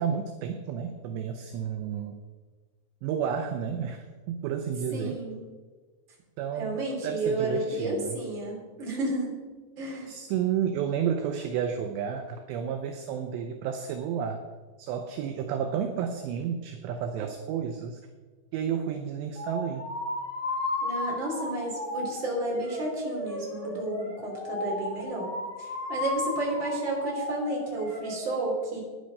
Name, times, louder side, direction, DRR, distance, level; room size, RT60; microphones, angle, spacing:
voice 1, 0.0-2.2 3.0-5.2 6.4-6.8 7.0-8.2 10.1-14.4 14.8-18.0 18.5-19.9, right 8 dB, 80° right, 6 dB, 2.6 m, -31 dB
voice 2, 4.9-5.4 6.6-9.3 9.8-10.1 15.8-15.9 20.8-28.8, right 2 dB, 30° right, -2 dB, 3.1 m, -32 dB
sound 1, 19.4-28.2, left 2 dB, 55° left, 6.2 m, -34 dB
11.5 x 10.0 x 5.3 m, 1.4 s
omnidirectional pair, 5.7 m